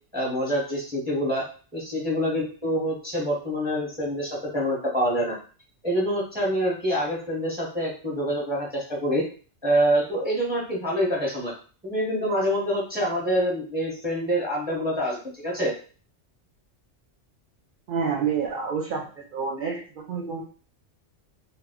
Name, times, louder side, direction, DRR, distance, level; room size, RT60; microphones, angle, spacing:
voice 1, 0.1-1.4 1.7-5.4 5.8-9.2 9.6-11.5 11.8-15.7, equal, 10° right, -4 dB, 0.7 m, -26 dB
voice 2, 17.9-20.4, right 6 dB, 55° right, -1 dB, 0.6 m, -28 dB
2.2 x 2.1 x 3.5 m, 0.39 s
omnidirectional pair, 1.3 m